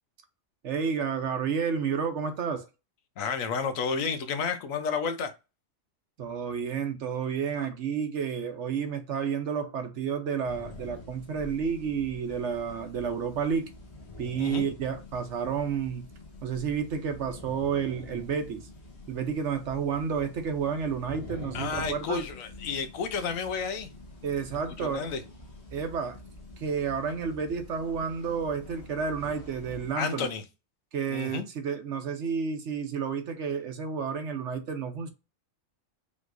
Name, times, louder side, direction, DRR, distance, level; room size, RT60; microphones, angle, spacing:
voice 1, 0.6-2.7 6.2-13.7 14.2-16.1 16.4-18.7 19.1-22.3 24.2-25.1 25.7-26.2 26.6-30.3 30.9-35.1, right 6 dB, 60° right, 1.0 m, -31 dB
voice 2, 3.2-5.3 14.4-14.7 21.5-23.9 24.8-25.2 30.0-30.4 31.1-31.5, left 5 dB, 75° left, 1.1 m, -31 dB
sound 1, 10.4-29.9, left 2 dB, 55° left, 1.6 m, -46 dB
5.2 x 3.1 x 2.5 m
omnidirectional pair, 1.4 m